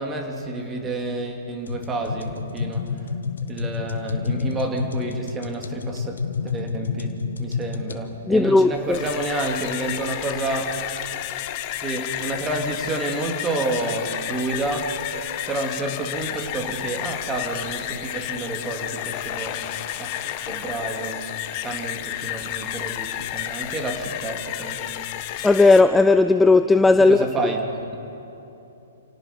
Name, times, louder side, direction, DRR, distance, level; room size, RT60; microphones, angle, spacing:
voice 1, 0.0-2.9 3.5-6.1 6.4-10.8 11.8-15.0 15.5-19.6 20.0-20.2 20.5-21.3 21.6-25.0 27.0-27.7, right 2 dB, 15° right, 3 dB, 2.5 m, -29 dB
sound 1, 1.7-8.0, left 5 dB, 85° left, 1.4 m, -29 dB
voice 2, 8.3-9.0 25.4-27.2, left 3 dB, 5° left, 10 dB, 0.4 m, -15 dB
sound 2, 8.8-25.8, left 12 dB, 40° left, 1.2 m, -31 dB
28.5 x 17.5 x 5.3 m, 2.9 s
hypercardioid pair, 135°, 0 cm